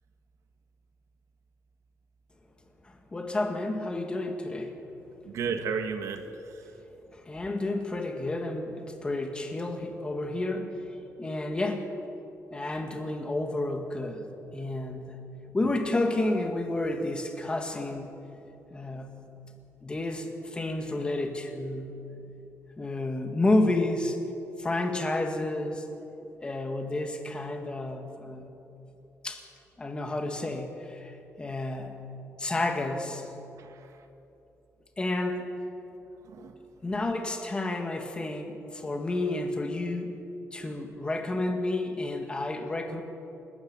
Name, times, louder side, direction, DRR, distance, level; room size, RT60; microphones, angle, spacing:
voice 1, 2.8-4.8 7.1-10.8 11.2-11.9 12.5-14.3 14.5-15.1 15.5-18.2 18.7-19.2 19.8-22.1 22.8-24.2 24.6-25.9 26.4-28.5 29.2-29.4 29.8-32.0 32.4-33.3 35.0-35.5 36.8-40.2 40.5-43.0, left 2 dB, 15° left, 4 dB, 2.1 m, -30 dB
voice 2, 5.2-6.7 33.6-33.9 36.2-36.6, right 6 dB, 75° right, 6 dB, 1.9 m, -34 dB
29.0 x 13.5 x 9.0 m, 2.9 s
wide cardioid pair, 170°, 6 cm